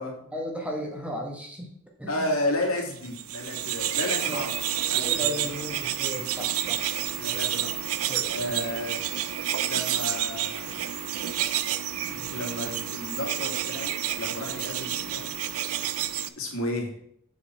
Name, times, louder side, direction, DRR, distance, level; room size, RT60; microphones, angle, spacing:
voice 1, 0.3-1.7 2.0-2.3 4.2-4.4 5.0-6.8 8.1-8.5, equal, 5° right, 0 dB, 1.4 m, -35 dB
voice 2, 2.1-4.5 4.9-5.6 7.1-7.7 8.3-9.0 9.6-10.7 12.1-15.3 16.4-16.9, left 1 dB, 70° left, 0 dB, 2.4 m, -32 dB
sound 1, 3.0-16.3, right 11 dB, 90° right, 0.5 m, -29 dB
7.2 x 6.8 x 4.5 m, 0.67 s
head